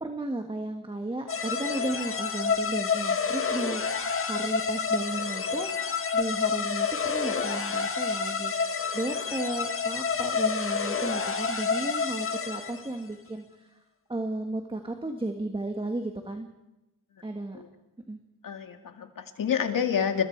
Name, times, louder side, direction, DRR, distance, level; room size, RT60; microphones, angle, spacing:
voice 1, 0.0-5.7 6.1-13.8 14.1-16.5 17.2-17.6 18.1-18.2, right 2 dB, 15° right, 4 dB, 1.7 m, -34 dB
sound 1, 1.3-13.0, left 5 dB, 40° left, 1.8 m, -29 dB
voice 2, 18.4-20.2, left 7 dB, 75° left, 6 dB, 2.3 m, -28 dB
29.5 x 21.0 x 4.7 m, 0.96 s
wide cardioid pair, 95°, 33 cm